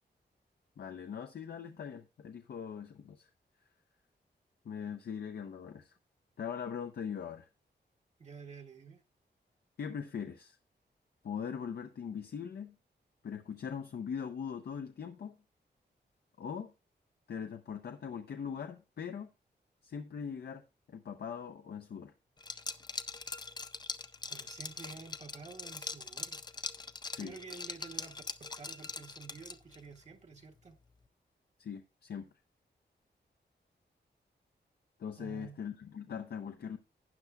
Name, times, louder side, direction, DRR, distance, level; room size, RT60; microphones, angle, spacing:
voice 1, 0.8-3.3 4.6-6.0 6.4-7.5 9.8-10.6 11.2-12.8 13.2-15.4 16.4-16.7 17.3-19.3 19.8-20.6 20.9-22.1 27.1-27.4 31.6-32.3 35.0-36.8, left 7 dB, 60° left, 0.7 m, -41 dB
voice 2, 8.2-9.0 24.3-26.4 27.2-30.8 35.2-35.6, right 4 dB, 40° right, 1.0 m, -50 dB
Liquid, 22.4-29.8, left 4 dB, 25° left, 0.4 m, -42 dB
12.0 x 9.3 x 2.3 m
wide cardioid pair, 180°, 18 cm